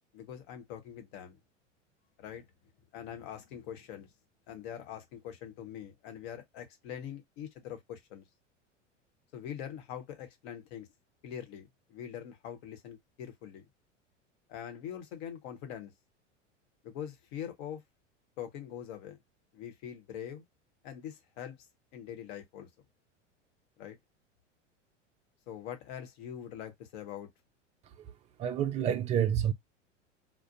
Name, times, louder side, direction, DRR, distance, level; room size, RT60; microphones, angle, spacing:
voice 1, 0.1-1.4 2.2-2.5 2.9-4.1 4.5-8.3 9.3-10.9 11.2-13.7 14.5-15.9 16.8-17.8 18.4-19.2 19.5-20.4 20.8-21.6 21.9-22.7 23.8-24.0 25.5-27.3, left 9 dB, 55° left, 1.0 m, -43 dB
voice 2, 28.4-29.5, right 9 dB, 20° right, 0.3 m, -28 dB
2.4 x 2.1 x 2.6 m
hypercardioid pair, 90°, 37 cm